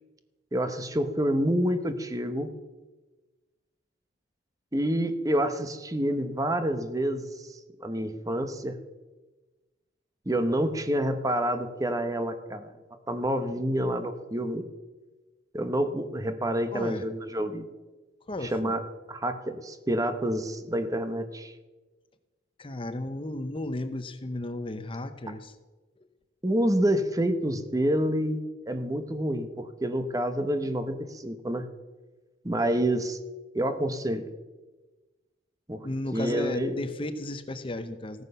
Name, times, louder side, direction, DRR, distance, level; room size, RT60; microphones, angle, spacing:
voice 1, 0.5-2.5 4.7-8.8 10.3-12.7 13.1-14.7 15.5-17.6 18.5-18.8 19.1-21.5 26.4-28.4 28.7-31.7 32.4-33.2 33.5-34.3 35.7-35.9 36.1-36.8, right 1 dB, 20° right, 9 dB, 1.0 m, -28 dB
voice 2, 16.7-17.0 18.3-18.8 22.6-25.5 35.8-38.2, left 1 dB, 30° left, 10 dB, 0.9 m, -34 dB
16.0 x 9.7 x 6.9 m, 1.2 s
head